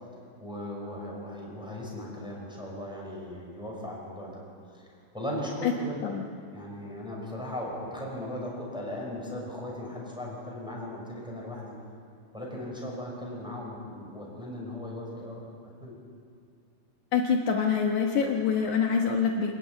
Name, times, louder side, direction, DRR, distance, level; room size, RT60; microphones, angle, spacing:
voice 1, 0.4-4.4 4.7-6.0 6.5-11.7 12.3-15.4 15.8-15.9, left 1 dB, ahead, -3 dB, 5.6 m, -37 dB
voice 2, 17.1-19.5, left 6 dB, 75° left, 1 dB, 1.8 m, -25 dB
26.0 x 14.0 x 9.9 m, 2.4 s
omnidirectional pair, 5.3 m